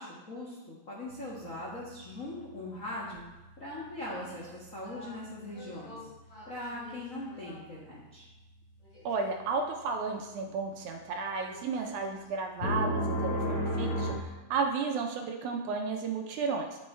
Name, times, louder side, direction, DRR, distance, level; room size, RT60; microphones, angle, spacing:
voice 1, 0.0-3.2 3.6-6.1 6.4-8.2, left 1 dB, 90° left, -6 dB, 0.7 m, -40 dB
sound 1, 1.1-3.4 3.8-4.5 4.8-5.2 5.5-7.6 8.9-9.2 11.4-12.0 12.6-14.1, equal, 25° left, 3.1 m, -34 dB
voice 2, 9.1-16.7, right 4 dB, 75° right, 3 dB, 1.9 m, -33 dB
10.0 x 5.4 x 4.4 m, 1.1 s
omnidirectional pair, 4.0 m